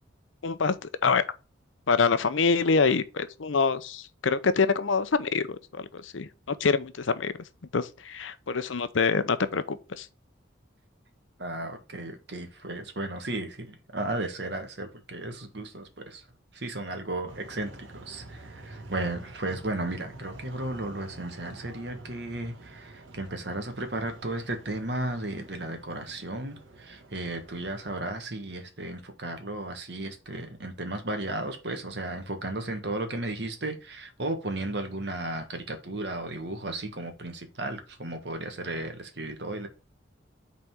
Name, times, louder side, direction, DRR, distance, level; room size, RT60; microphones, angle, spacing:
voice 1, 0.4-1.2 1.9-7.3 7.7-10.1, left 5 dB, 80° left, 0.7 m, -26 dB
voice 2, 11.4-16.2 16.5-39.7, right 2 dB, 60° right, 1.5 m, -34 dB
sound 1, 17.3-28.0, right 2 dB, 85° right, 1.3 m, -48 dB
5.7 x 4.1 x 4.5 m
head